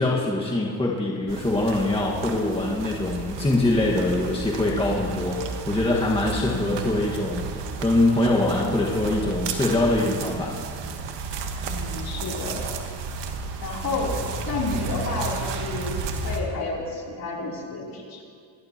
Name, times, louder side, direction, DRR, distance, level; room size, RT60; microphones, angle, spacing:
voice 1, 0.0-10.5, left 2 dB, 10° left, -4 dB, 1.6 m, -23 dB
sound 1, 1.3-16.4, right 4 dB, 70° right, 1.5 m, -32 dB
voice 2, 6.3-6.7 11.7-12.7 13.6-14.2 14.5-18.2, left 3 dB, 50° left, -3 dB, 3.5 m, -31 dB
26.0 x 11.5 x 2.9 m, 2.2 s
cardioid pair, 95°, 45 cm